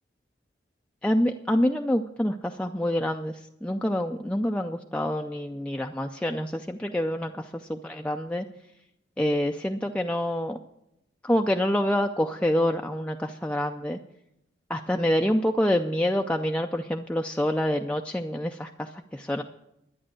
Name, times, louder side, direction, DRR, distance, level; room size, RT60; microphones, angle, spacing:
voice 1, 1.0-8.5 9.2-10.6 11.2-14.0 14.7-19.4, equal, 5° left, 3 dB, 0.4 m, -27 dB
11.0 x 10.0 x 7.6 m, 0.84 s
head